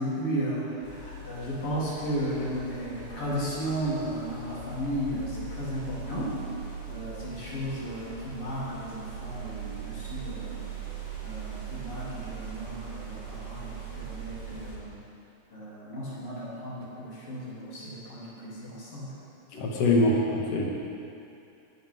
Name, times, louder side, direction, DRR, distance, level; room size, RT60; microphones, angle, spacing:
voice 1, 0.0-6.4 6.9-10.7 11.2-14.9 15.5-19.1, right 1 dB, 35° left, -9 dB, 3.8 m, -34 dB
sound 1, 0.8-14.8, right 4 dB, 80° right, 5.4 m, -40 dB
voice 2, 19.5-20.6, left 2 dB, 50° left, -3 dB, 2.1 m, -24 dB
19.0 x 11.0 x 3.8 m, 2.7 s
omnidirectional pair, 5.0 m